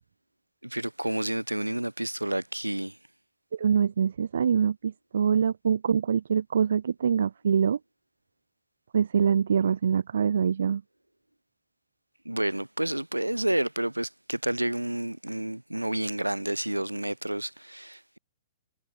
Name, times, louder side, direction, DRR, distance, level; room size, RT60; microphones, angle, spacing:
voice 1, 0.6-3.0 12.2-18.2, right 1 dB, 90° right, 4.6 m, -30 dB
voice 2, 3.5-7.8 8.9-10.8, right 7 dB, 65° right, 1.8 m, -24 dB
figure-of-eight pair, 110°, 0 cm